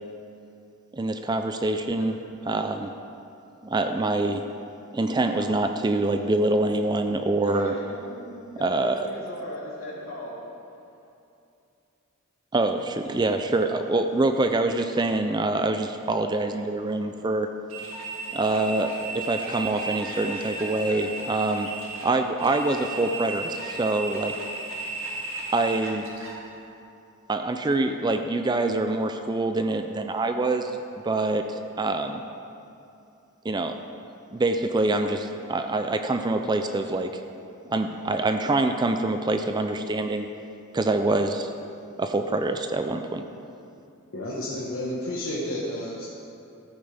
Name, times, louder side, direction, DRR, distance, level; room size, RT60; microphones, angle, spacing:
voice 1, 0.9-2.2 2.5-2.9 3.6-4.4 4.9-7.7 8.6-9.1 12.5-17.5 18.3-21.7 22.0-24.3 25.5-26.1 27.3-30.8 31.0-32.2 33.4-33.8 34.3-37.2 37.7-40.3 40.7-41.5 42.0-43.2, right 2 dB, 20° right, 6 dB, 0.4 m, -25 dB
voice 2, 7.4-10.4, left 1 dB, 90° left, -5 dB, 2.7 m, -38 dB
sound 1, 17.7-26.4, right 3 dB, 75° right, 2.2 m, -35 dB
voice 3, 44.1-46.1, left 1 dB, 70° left, -6 dB, 1.3 m, -31 dB
14.5 x 8.8 x 3.4 m, 2.7 s
head